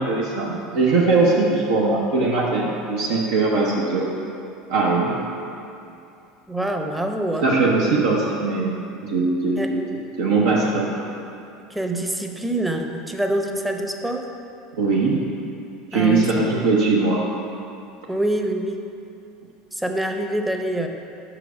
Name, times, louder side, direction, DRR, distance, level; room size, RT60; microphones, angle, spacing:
voice 1, 0.0-4.1 4.7-5.1 7.4-9.8 10.2-10.9 14.8-15.2 15.9-17.2, right 3 dB, 75° right, -4 dB, 0.8 m, -20 dB
voice 2, 6.5-7.5 7.9-8.0 9.6-9.7 11.7-14.3 15.9-16.4 18.1-18.8 19.7-20.9, right 1 dB, 5° right, 4 dB, 0.7 m, -25 dB
5.7 x 4.9 x 6.0 m, 2.6 s
hypercardioid pair, 75°, 0 cm